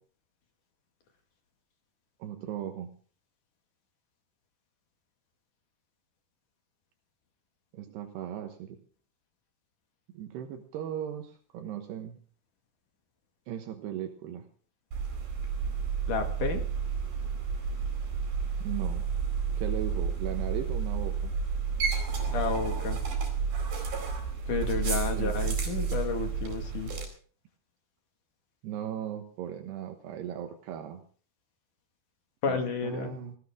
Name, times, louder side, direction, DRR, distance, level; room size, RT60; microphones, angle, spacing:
voice 1, 2.2-2.9 7.7-8.8 10.1-12.2 13.5-14.4 18.6-19.1 19.6-21.3 25.2-25.5 28.6-31.0 32.5-33.4, right 10 dB, 80° right, 6 dB, 3.4 m, -37 dB
sound 1, 14.9-27.1, right 6 dB, 60° right, 6.2 m, -31 dB
voice 2, 16.1-16.6 22.3-23.0 24.5-26.9 32.4-33.2, left 5 dB, 55° left, 5 dB, 3.4 m, -31 dB
19.0 x 17.0 x 3.7 m, 0.42 s
omnidirectional pair, 4.7 m